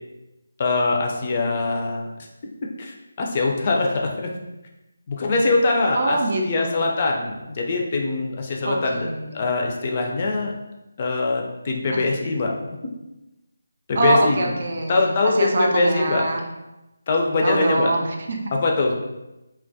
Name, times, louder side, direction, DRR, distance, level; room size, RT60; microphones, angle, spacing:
voice 1, 0.6-2.1 2.8-4.3 5.1-9.1 9.3-10.5 11.0-12.5 13.9-14.5 14.9-16.2 17.1-17.9 18.5-18.9, left 3 dB, 35° left, 0 dB, 0.3 m, -22 dB
voice 2, 6.0-6.8 8.6-9.5 11.9-12.0 14.0-16.5 17.4-18.5, right 2 dB, 50° right, 2 dB, 0.4 m, -24 dB
2.2 x 2.1 x 2.6 m, 0.98 s
figure-of-eight pair, 160°, 0 cm